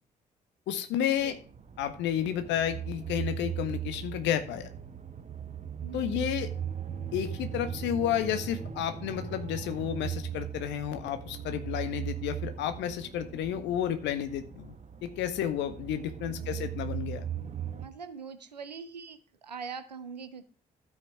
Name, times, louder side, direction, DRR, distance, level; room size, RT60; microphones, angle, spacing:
voice 1, 0.7-1.4 1.8-4.7 5.9-6.5 7.1-14.7 15.0-17.2, left 10 dB, 60° left, 9 dB, 1.5 m, -31 dB
sound 1, 1.2-17.9, right 9 dB, 35° right, 1.3 m, -38 dB
voice 2, 5.8-6.2 16.2-16.7 17.8-20.4, right 6 dB, 85° right, 11 dB, 0.9 m, -43 dB
12.5 x 8.4 x 4.8 m, 0.40 s
figure-of-eight pair, 45°, 21 cm